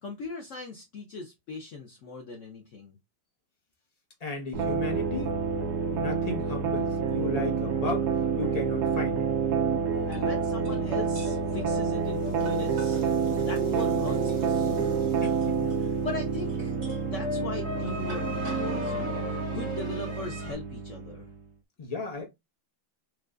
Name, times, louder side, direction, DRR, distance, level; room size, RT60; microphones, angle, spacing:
voice 1, 0.0-3.0 10.0-13.2 13.5-15.1 15.6-21.3, left 3 dB, 80° left, 0.6 m, -40 dB
voice 2, 4.2-5.3 5.9-8.1 8.4-9.2 15.2-15.7 21.8-22.3, left 3 dB, 35° left, 0.6 m, -34 dB
sound 1, 4.5-21.3, right 6 dB, 70° right, 1.1 m, -28 dB
sound 2, 9.9-20.5, equal, 45° right, 1.9 m, -37 dB
4.6 x 2.3 x 2.4 m
omnidirectional pair, 2.1 m